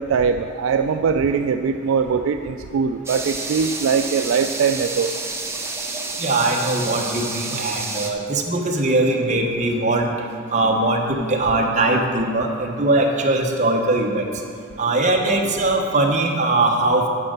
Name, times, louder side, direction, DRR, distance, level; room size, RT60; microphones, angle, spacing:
voice 1, 0.0-5.1, right 6 dB, 70° right, 7 dB, 0.3 m, -21 dB
sound 1, 3.1-8.1, right 3 dB, 10° right, 0.6 m, -29 dB
voice 2, 6.2-10.1 10.5-14.3 14.8-17.1, right 2 dB, 35° right, 1 dB, 0.9 m, -20 dB
9.9 x 5.3 x 6.6 m, 2.3 s
head